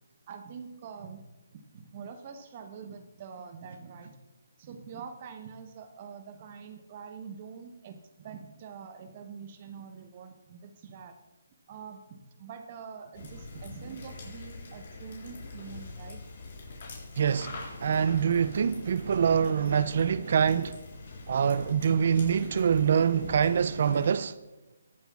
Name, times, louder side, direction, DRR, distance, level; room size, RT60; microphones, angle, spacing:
voice 1, 0.3-1.2 1.5-4.1 4.6-11.2 11.7-16.2 18.8-19.0, right 6 dB, 35° right, 0.9 m, -45 dB
sound 1, 13.1-24.1, left 3 dB, 50° left, 4.1 m, -44 dB
voice 2, 17.2-20.8 21.3-24.4, right 7 dB, 50° right, 0.3 m, -25 dB
21.5 x 7.9 x 2.4 m
hypercardioid pair, 160°, 0 cm